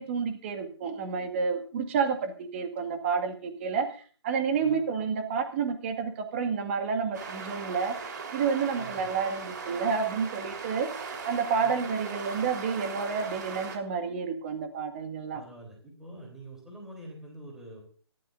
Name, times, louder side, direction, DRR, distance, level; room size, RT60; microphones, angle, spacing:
voice 1, 0.0-4.0 4.2-10.9 11.2-15.4, right 6 dB, 30° right, 5 dB, 2.0 m, -30 dB
sound 1, 7.1-13.8, right 4 dB, 45° right, 4.1 m, -39 dB
voice 2, 8.8-9.1 11.6-11.8 15.3-17.8, right 2 dB, 5° right, -1 dB, 3.5 m, -46 dB
26.0 x 13.0 x 2.6 m, 0.42 s
hypercardioid pair, 155°, 14 cm